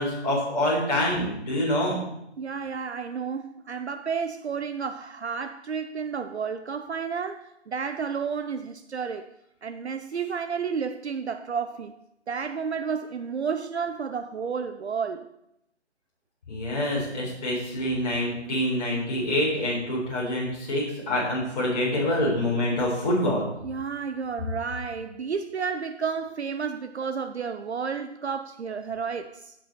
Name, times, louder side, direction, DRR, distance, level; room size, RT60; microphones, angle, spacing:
voice 1, 0.0-2.0 16.5-23.4, left 1 dB, 40° left, 4.2 m, -26 dB
voice 2, 2.4-9.3 9.6-11.9 12.3-15.3 23.6-29.5, right 6 dB, 70° right, 0.6 m, -31 dB
14.5 x 5.4 x 4.4 m
figure-of-eight pair, 155°, 35 cm